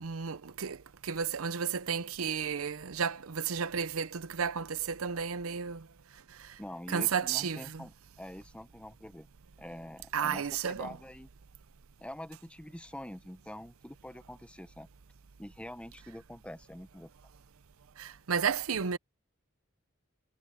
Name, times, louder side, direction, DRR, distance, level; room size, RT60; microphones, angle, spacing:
voice 1, 0.0-0.8 1.0-5.8 6.9-7.8 10.1-11.0 18.0-19.0, right 7 dB, 80° right, 0.7 m, -32 dB
voice 2, 6.6-9.3 9.6-11.3 12.0-14.9 15.4-17.1, left 1 dB, 5° left, 1.0 m, -45 dB
head